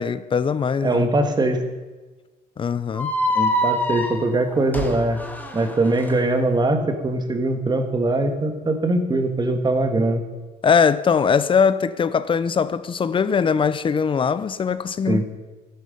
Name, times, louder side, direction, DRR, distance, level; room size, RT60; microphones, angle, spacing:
voice 1, 0.0-1.1 2.6-3.1 10.6-15.2, left 6 dB, 30° left, 0.6 m, -21 dB
voice 2, 0.8-1.6 3.3-5.2 5.5-10.2 15.1-15.3, right 2 dB, 25° right, 1.6 m, -21 dB
sound 1, 2.9-6.1, left 1 dB, 10° left, 1.6 m, -25 dB
12.5 x 11.5 x 5.4 m
cardioid pair, 110°, 17 cm